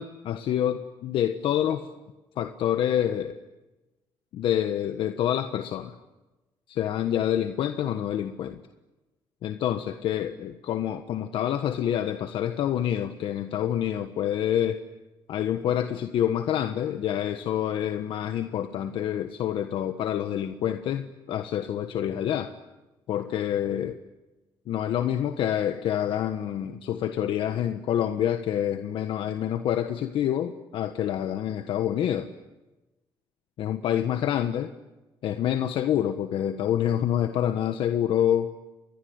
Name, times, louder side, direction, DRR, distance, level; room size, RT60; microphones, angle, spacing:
voice 1, 0.0-1.9 2.4-3.4 4.3-5.9 6.7-8.6 9.4-14.8 15.3-22.5 23.1-24.0 24.7-32.3 33.6-34.7 35.2-38.5, left 10 dB, 70° left, 8 dB, 1.3 m, -27 dB
29.5 x 22.5 x 8.1 m, 1.1 s
cardioid pair, 85°, 9 cm